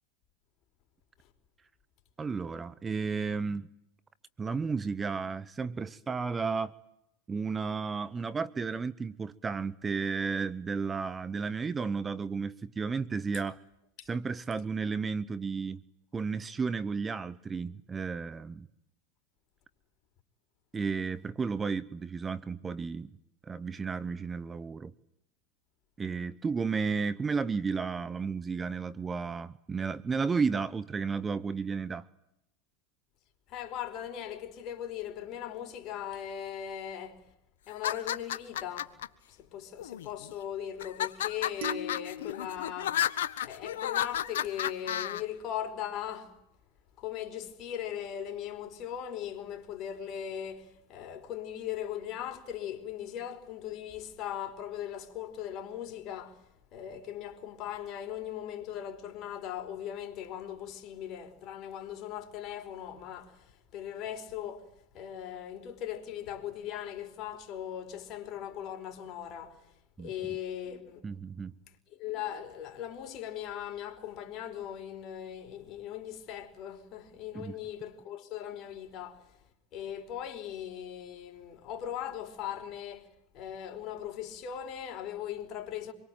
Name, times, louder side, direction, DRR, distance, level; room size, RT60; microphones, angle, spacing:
voice 1, 2.2-3.7 4.4-6.7 7.3-13.6 14.1-15.8 16.1-18.7 20.7-23.1 23.4-24.9 26.0-32.1 70.0-70.1 71.0-71.5 77.3-77.6, right 5 dB, 20° right, 1.0 m, -33 dB
voice 2, 33.5-37.2 37.7-38.9 39.3-43.0 43.4-46.3 47.0-56.4 56.7-64.7 64.9-69.6 70.0-71.0 71.9-79.2 79.7-83.1 83.3-85.9, left 10 dB, 50° left, 4.7 m, -39 dB
sound 1, 37.7-39.1 39.8-40.3 40.8-45.2, left 11 dB, 80° left, 1.5 m, -32 dB
sound 2, 41.6-44.0, equal, 70° right, 2.7 m, -44 dB
27.0 x 23.0 x 9.2 m
hypercardioid pair, 105°, 0 cm